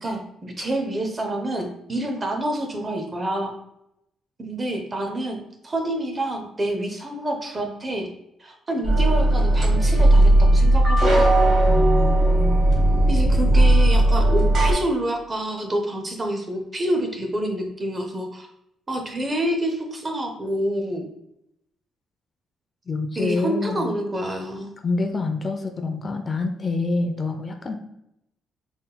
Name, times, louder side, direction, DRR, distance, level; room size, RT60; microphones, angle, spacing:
voice 1, 0.0-3.6 4.4-8.1 8.4-11.3 13.1-18.5 18.9-21.0 23.1-24.7, right 1 dB, 30° right, 3 dB, 0.8 m, -27 dB
sound 1, 8.8-14.7, right 1 dB, 45° right, 1.3 m, -17 dB
voice 2, 11.7-12.6 22.9-23.9 24.8-27.8, left 3 dB, 35° left, 5 dB, 0.4 m, -26 dB
4.0 x 3.8 x 2.2 m, 0.81 s
cardioid pair, 90°, 0 cm